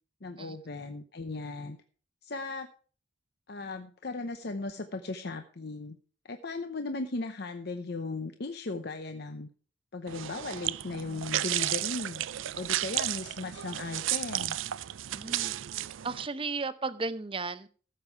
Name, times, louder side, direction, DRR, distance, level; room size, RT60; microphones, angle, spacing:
voice 1, 0.2-1.8 2.2-2.7 3.5-6.0 6.2-9.5 9.9-12.2 12.5-14.6, left 3 dB, 55° left, 8 dB, 0.8 m, -37 dB
sound 1, 10.1-16.3, right 13 dB, 80° right, 0.4 m, -33 dB
voice 2, 15.1-15.5 16.0-17.7, right 3 dB, 25° right, 13 dB, 0.7 m, -34 dB
14.5 x 7.3 x 4.6 m, 0.41 s
head